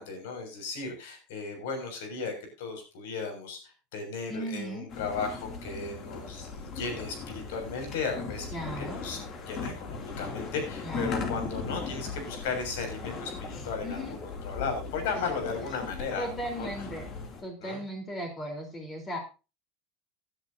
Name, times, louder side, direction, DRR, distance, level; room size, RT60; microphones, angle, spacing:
voice 1, 0.0-8.5 8.8-16.7 17.6-17.8, left 4 dB, 90° left, 5 dB, 6.6 m, -35 dB
voice 2, 4.3-4.9 8.5-9.1 10.8-11.3 13.8-14.2 15.9-17.1 17.4-19.2, equal, 20° left, 3 dB, 4.0 m, -37 dB
sound 1, 4.9-17.4, left 4 dB, 35° left, 2.9 m, -38 dB
17.5 x 10.5 x 2.8 m, 0.31 s
supercardioid pair, 150°, 0 cm